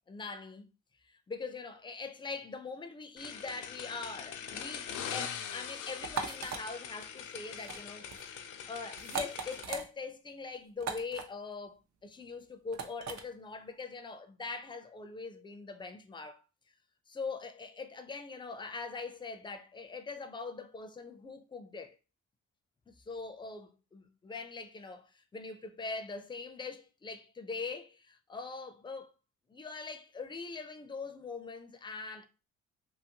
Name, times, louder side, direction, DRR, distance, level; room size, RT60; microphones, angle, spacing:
voice 1, 0.1-0.7 1.0-16.4 17.1-22.0 22.9-29.1 29.5-32.3, left 4 dB, 15° left, 0.4 m, -42 dB
sound 1, 3.2-9.6, left 8 dB, 80° left, 0.5 m, -42 dB
sound 2, 6.0-6.6 7.5-7.8 8.1-8.3 9.0-9.8 10.8-11.2 12.7-13.2, right 6 dB, 60° right, 0.6 m, -38 dB
2.8 x 2.6 x 2.8 m
cardioid pair, 90°, 30 cm